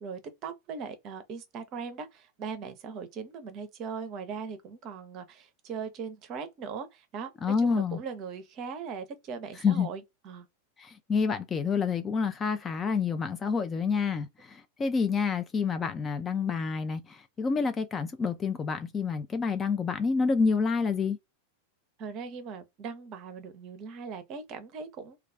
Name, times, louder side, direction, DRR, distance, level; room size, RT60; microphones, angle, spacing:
voice 1, 0.0-7.3 7.6-10.5 22.0-25.2, right 5 dB, 35° right, 0.6 m, -39 dB
voice 2, 7.4-8.0 9.6-9.9 10.8-21.2, left 5 dB, 20° left, 0.3 m, -28 dB
2.3 x 2.2 x 3.4 m
figure-of-eight pair, 90°, 0 cm